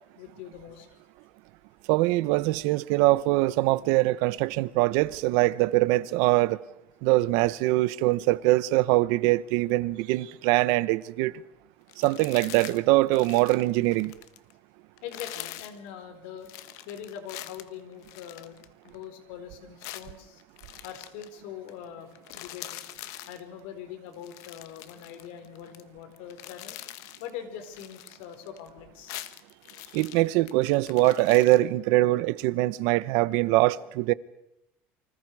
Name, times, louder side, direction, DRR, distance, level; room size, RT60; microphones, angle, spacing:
voice 1, 0.1-0.9 15.0-16.5 16.9-18.6 18.8-20.4 20.8-22.1 22.3-22.8 23.3-26.8 27.2-29.2, left 9 dB, 85° left, 4.7 m, -42 dB
voice 2, 1.9-6.6 7.0-11.3 12.0-14.1 29.9-34.1, right 18 dB, 75° right, 1.0 m, -23 dB
sound 1, 11.9-12.8 13.1-14.5 15.0-15.8 16.4-19.1 19.8-21.3 21.7-21.8 22.1-23.4 24.1-25.8 26.1-27.3 27.6-28.7 28.9-31.6, left 15 dB, 70° left, 1.5 m, -43 dB
29.0 x 25.5 x 4.9 m
cardioid pair, 140°, 6 cm